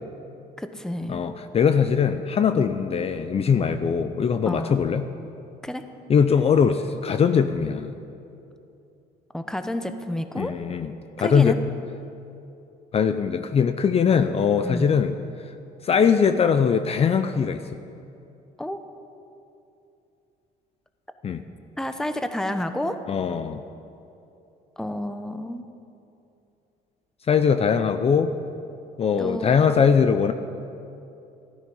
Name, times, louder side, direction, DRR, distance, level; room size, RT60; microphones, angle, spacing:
voice 1, 0.6-1.2 2.6-2.7 4.5-4.8 5.6-5.8 9.3-10.5 11.2-11.6 14.6-15.0 18.6-18.8 21.8-23.0 24.8-25.6 29.2-29.8, left 1 dB, 5° left, 8 dB, 0.8 m, -30 dB
voice 2, 1.1-5.0 6.1-7.9 10.4-10.9 11.2-11.6 12.9-15.2 15.8-17.6 21.2-21.4 23.1-23.6 27.3-28.3 29.0-30.3, left 6 dB, 35° left, 9 dB, 0.6 m, -21 dB
14.5 x 13.0 x 5.6 m, 2.7 s
cardioid pair, 110°, 17 cm